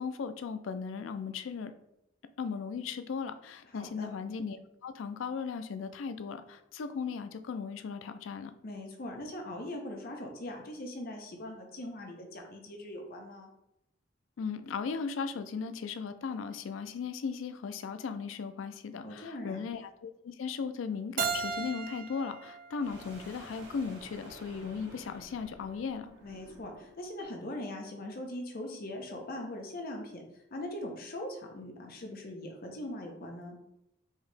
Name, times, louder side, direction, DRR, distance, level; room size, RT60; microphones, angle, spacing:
voice 1, 0.0-1.7 2.4-8.5 14.4-26.1, left 5 dB, 85° left, 9 dB, 0.4 m, -37 dB
voice 2, 3.7-4.1 8.6-13.5 19.0-19.6 26.2-30.2 30.5-33.6, left 1 dB, 50° left, 2 dB, 0.7 m, -41 dB
Keyboard (musical), 21.2-24.0, right 5 dB, 45° right, 0.4 m, -37 dB
sound 1, 22.8-27.1, right 1 dB, 65° right, 1.5 m, -52 dB
4.6 x 2.8 x 3.3 m, 0.84 s
head